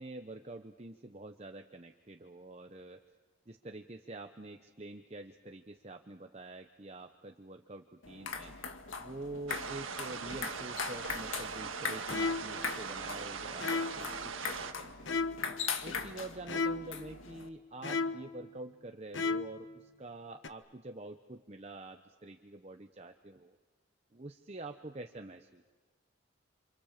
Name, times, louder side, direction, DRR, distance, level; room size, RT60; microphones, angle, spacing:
voice 1, 0.0-3.0 3.5-8.5 9.0-15.2 15.8-23.6 24.1-25.6, right 2 dB, 30° right, 6 dB, 0.9 m, -47 dB
sound 1, 8.0-17.5, left 5 dB, 85° left, 1.9 m, -41 dB
sound 2, 9.5-14.7, right 5 dB, 90° right, 1.7 m, -41 dB
sound 3, 12.1-12.7 13.6-14.1 15.1-15.6 16.5-17.0 17.8-18.4 19.1-19.7 20.4-20.5, left 4 dB, 70° left, 1.2 m, -34 dB
28.5 x 27.0 x 7.4 m, 1.5 s
head